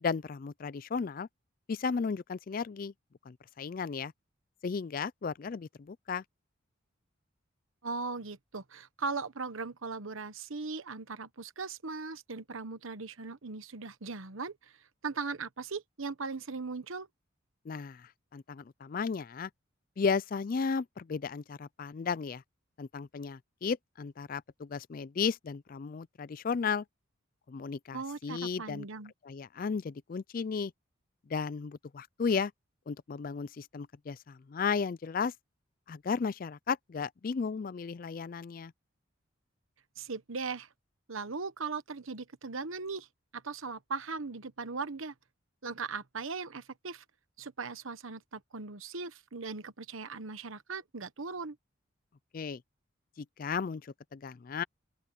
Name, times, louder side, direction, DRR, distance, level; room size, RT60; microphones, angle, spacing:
voice 1, 0.0-1.3 1.7-2.9 3.3-4.1 4.6-6.2 17.7-19.5 20.0-22.4 22.8-26.8 27.5-28.9 29.2-30.7 31.3-32.5 32.9-35.3 35.9-38.7 52.3-52.6 53.2-54.6, left 5 dB, 45° left, 0.4 m, -34 dB
voice 2, 7.8-14.8 15.0-17.1 27.9-29.1 40.0-40.7 41.1-43.1 43.3-45.1 45.6-47.0 47.4-51.6, right 4 dB, 80° right, 1.1 m, -39 dB
open air
head